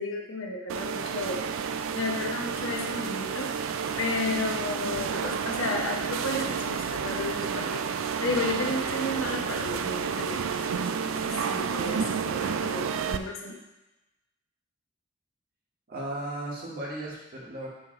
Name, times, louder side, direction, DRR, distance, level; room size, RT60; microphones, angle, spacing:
voice 1, 0.0-1.4 1.9-3.5 4.0-7.9 8.2-13.6, left 2 dB, 80° left, 0 dB, 0.9 m, -33 dB
sound 1, 0.7-13.2, right 6 dB, 85° right, 0.4 m, -30 dB
voice 2, 15.9-17.7, right 1 dB, 50° right, -4 dB, 1.6 m, -35 dB
5.8 x 3.2 x 5.7 m, 0.97 s
head